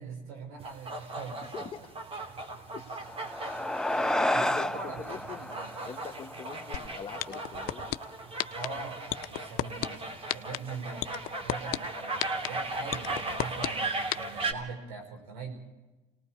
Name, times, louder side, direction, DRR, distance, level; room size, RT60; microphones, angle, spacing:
voice 1, 0.0-1.4 4.3-5.8 8.5-9.0 9.3-15.5, right 4 dB, 85° right, 3 dB, 5.2 m, -42 dB
sound 1, 0.6-14.5, right 2 dB, 35° right, 3.0 m, -38 dB
voice 2, 1.4-1.8 2.7-3.2 4.2-5.5 5.9-7.9 9.7-10.0 14.4-14.6, left 6 dB, 30° left, -3 dB, 1.7 m, -44 dB
sound 2, 2.9-7.7, left 1 dB, 5° left, 0.7 m, -32 dB
sound 3, 6.7-6.8 7.2-7.9 8.4-8.7 9.1-9.9 10.3-10.6 11.0-11.8 12.2-12.5 12.9-13.7 14.1-14.2, left 16 dB, 65° left, 0.7 m, -29 dB
28.5 x 19.5 x 4.7 m, 1.1 s
supercardioid pair, 80°, 17 cm